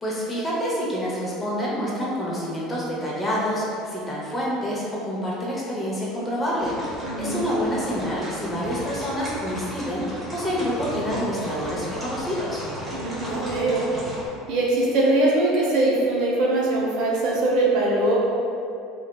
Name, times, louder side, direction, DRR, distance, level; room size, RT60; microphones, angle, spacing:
voice 1, 0.0-12.6, equal, 20° left, -6 dB, 0.6 m, -27 dB
sound 1, 6.6-14.3, equal, 15° right, 0.8 m, -35 dB
voice 2, 7.0-7.5 12.9-13.8 14.5-18.2, right 2 dB, 70° right, -4 dB, 0.5 m, -22 dB
2.6 x 2.3 x 2.2 m, 2.6 s
supercardioid pair, 110°, 0 cm